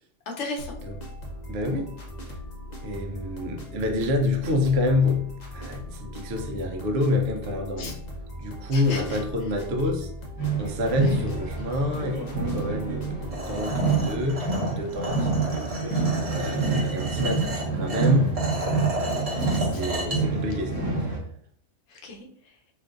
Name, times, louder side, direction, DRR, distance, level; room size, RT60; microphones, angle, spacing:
voice 1, 0.3-0.8 7.8-7.9 8.7-9.2 11.0-11.2 15.9-16.2 19.4-19.8 21.9-22.6, left 2 dB, 70° left, 1 dB, 1.0 m, -36 dB
sound 1, 0.6-14.3, left 1 dB, 45° left, 0.6 m, -39 dB
voice 2, 1.5-1.9 2.3-2.4 2.8-8.0 8.4-10.1 10.6-15.3 16.1-18.3 18.6-18.8 19.6-21.0, left 2 dB, 60° right, 2 dB, 0.8 m, -27 dB
sound 2, 10.4-21.2, right 4 dB, 20° left, 1.0 m, -27 dB
sound 3, 13.3-20.2, right 1 dB, 35° right, 0.8 m, -33 dB
3.8 x 2.5 x 2.4 m, 0.64 s
omnidirectional pair, 1.3 m